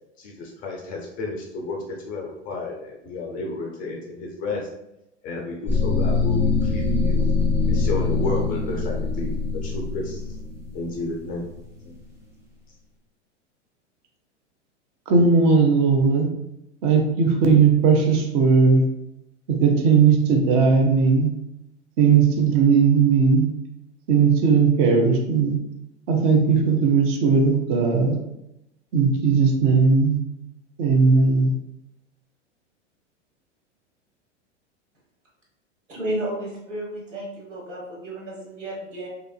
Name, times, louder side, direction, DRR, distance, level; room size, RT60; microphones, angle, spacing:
voice 1, 0.2-4.7 5.2-7.2 7.7-9.3 9.6-10.4 10.7-11.5 11.8-12.0, left 2 dB, 25° left, 0 dB, 0.3 m, -31 dB
sound 1, 5.7-11.7, left 4 dB, 10° right, 0.7 m, -23 dB
voice 2, 15.1-16.3 16.8-18.9 19.5-21.3 22.0-23.5 24.1-25.5 26.1-28.2 28.9-30.2 30.8-31.5, right 5 dB, 40° right, 2 dB, 0.6 m, -18 dB
voice 3, 35.9-39.1, right 1 dB, 85° right, -3 dB, 1.2 m, -32 dB
2.9 x 2.4 x 2.2 m, 0.85 s
hypercardioid pair, 95°, 36 cm